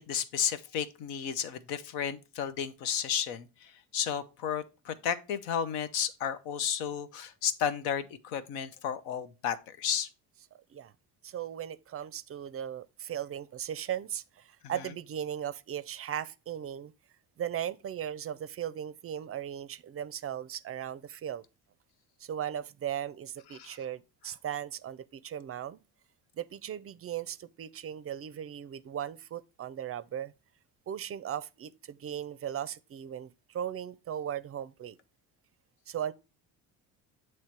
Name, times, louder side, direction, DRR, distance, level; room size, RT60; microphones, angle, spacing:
voice 1, 0.0-10.1 23.5-23.8, left 8 dB, 85° left, 0.8 m, -33 dB
voice 2, 11.2-16.9 17.4-21.4 22.2-25.8 26.4-30.3 30.9-35.0 35.9-36.1, right 10 dB, 35° right, 0.4 m, -37 dB
7.3 x 3.1 x 4.5 m
supercardioid pair, 85°, 40 cm